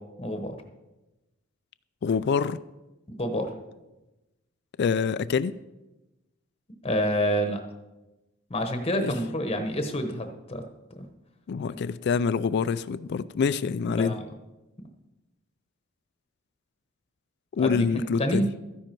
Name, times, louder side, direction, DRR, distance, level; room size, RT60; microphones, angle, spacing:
voice 1, 0.2-0.5 3.1-3.5 6.8-7.6 8.5-10.6 11.0-11.1 13.9-14.2 17.5-18.4, equal, 30° left, 1.0 m, -28 dB
voice 2, 2.0-2.6 4.8-5.5 9.0-9.1 11.5-14.1 17.6-18.5, left 5 dB, 55° left, 0.3 m, -26 dB
13.5 x 10.0 x 4.5 m
head